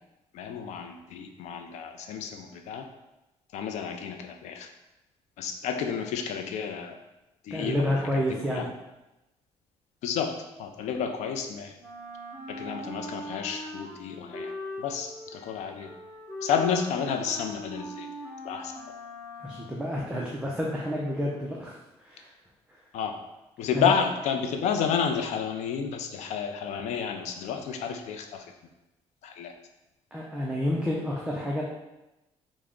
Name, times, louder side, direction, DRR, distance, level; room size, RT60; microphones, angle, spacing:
voice 1, 0.3-2.9 3.5-4.7 5.4-7.0 7.4-8.7 10.0-11.8 12.5-14.5 14.8-15.9 16.4-18.1 18.4-18.7 22.9-23.2 23.6-28.4 29.2-29.5, left 7 dB, 85° left, 5 dB, 0.4 m, -31 dB
voice 2, 7.5-8.7 19.4-22.3 23.7-23.9 30.1-31.6, left 1 dB, 10° right, -4 dB, 0.4 m, -29 dB
Wind instrument woodwind instrument, 11.8-19.9, equal, 10° left, 1.2 m, -41 dB
3.4 x 2.0 x 3.6 m, 0.98 s
cardioid pair, 135°, 11 cm